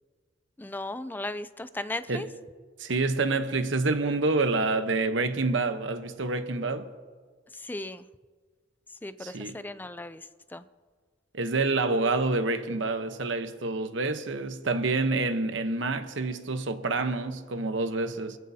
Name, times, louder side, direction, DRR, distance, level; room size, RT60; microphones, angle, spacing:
voice 1, 0.6-2.3 7.6-8.0 9.0-10.3 10.5-10.6, left 2 dB, 10° left, 0.4 m, -36 dB
voice 2, 2.8-6.9 9.2-9.6 11.3-18.4, right 3 dB, 75° right, 1.0 m, -27 dB
23.0 x 15.0 x 2.8 m
head